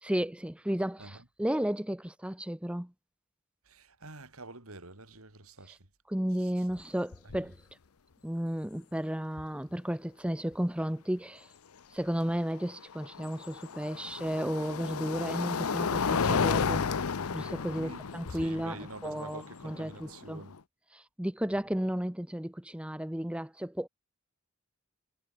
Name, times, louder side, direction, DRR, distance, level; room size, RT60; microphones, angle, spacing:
voice 1, 0.0-2.9 6.1-7.6 8.2-11.5 11.9-16.9 17.3-20.4 20.9-23.9, equal, 5° right, 0.7 m, -33 dB
voice 2, 3.7-5.8 6.4-6.6 17.7-18.0 18.3-20.6 21.5-21.6, right 2 dB, 85° right, 4.6 m, -47 dB
sound 1, 6.7-6.8 7.1-7.5 9.4-9.5 12.5-20.6, left 5 dB, 90° left, 0.7 m, -33 dB
head